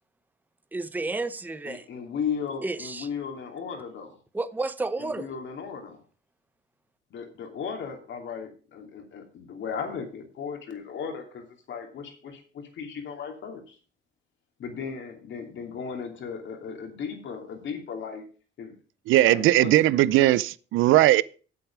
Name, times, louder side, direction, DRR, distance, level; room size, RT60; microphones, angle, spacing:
voice 1, 0.7-1.8 2.6-3.1 4.3-5.3, right 3 dB, 10° right, 0.6 m, -31 dB
voice 2, 1.6-4.2 5.0-6.0 7.1-13.8 14.6-18.2 18.6-18.7 19.2-19.7, left 6 dB, 70° left, 2.9 m, -36 dB
voice 3, 19.1-21.2, right 15 dB, 90° right, 0.5 m, -19 dB
8.4 x 8.1 x 5.9 m
cardioid pair, 90°, 20 cm